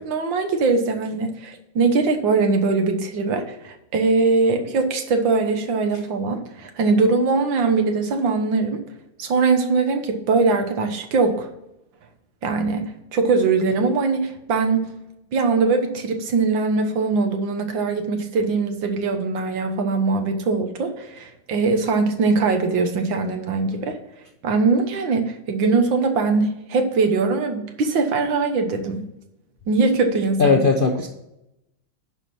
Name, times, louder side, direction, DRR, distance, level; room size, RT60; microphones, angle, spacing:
voice 1, 0.0-8.8 9.2-11.5 12.4-14.9 15.3-24.0 24.4-29.0 29.7-30.6, right 4 dB, 85° right, 6 dB, 1.9 m, -21 dB
voice 2, 30.4-31.1, left 4 dB, 50° left, 2 dB, 0.6 m, -17 dB
10.5 x 4.6 x 5.5 m, 0.87 s
omnidirectional pair, 2.0 m